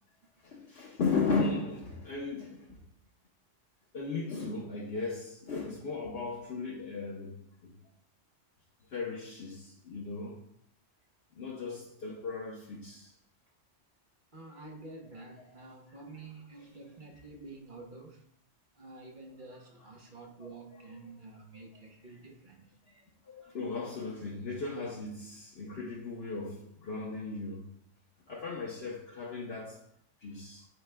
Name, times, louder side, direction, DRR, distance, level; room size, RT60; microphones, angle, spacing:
voice 1, 0.4-2.9 3.9-7.4 7.6-7.7 8.9-10.5 11.3-13.1 15.2-15.5 15.9-16.0 21.5-21.9 22.2-22.3 22.9-27.7 28.3-29.9 30.2-30.7, left 4 dB, 60° left, 1.1 m, -36 dB
voice 2, 14.3-18.2 18.7-22.7, right 3 dB, 45° right, 1.1 m, -49 dB
11.0 x 4.7 x 2.2 m
omnidirectional pair, 1.3 m